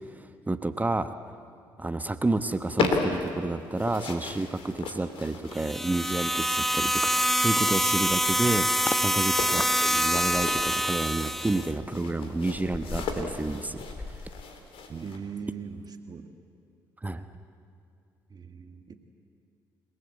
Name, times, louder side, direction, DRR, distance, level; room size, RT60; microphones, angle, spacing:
voice 1, 0.2-1.1 1.8-13.8 17.0-17.2, right 2 dB, 15° right, 10 dB, 1.2 m, -30 dB
sound 1, 2.4-15.2, left 4 dB, 65° left, 3.2 m, -36 dB
sound 2, 5.5-11.7, equal, ahead, 0.9 m, -26 dB
sound 3, 8.9-9.1 9.6-15.2 15.5-15.7, left 3 dB, 20° left, 1.3 m, -41 dB
voice 2, 14.9-16.3 18.3-19.1, right 6 dB, 40° right, 6 dB, 1.7 m, -40 dB
29.0 x 18.5 x 8.4 m, 2.5 s
supercardioid pair, 60°, 10 cm